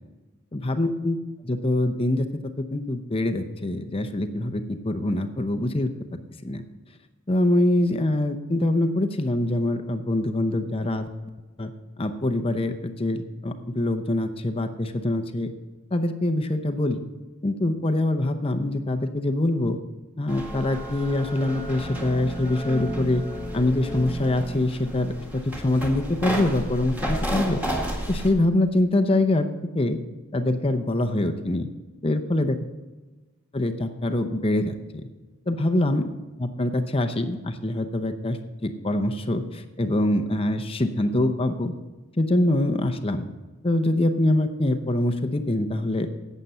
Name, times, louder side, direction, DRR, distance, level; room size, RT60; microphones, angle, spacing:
voice 1, 0.5-1.2 1.4-2.3 2.7-5.9 6.4-6.6 7.3-11.1 11.6-11.7 12.0-15.5 15.9-17.0 17.4-19.8 20.2-23.2 23.5-27.6 28.1-29.5 29.7-30.0 30.3-31.7 32.0-32.6 33.5-34.8 35.5-36.0 36.4-38.4 38.6-41.7 42.2-43.2 43.6-46.1, left 1 dB, 25° left, 8 dB, 0.7 m, -24 dB
sound 1, 20.3-28.3, equal, 10° right, 1.9 m, -32 dB
12.0 x 8.2 x 5.5 m, 1.2 s
head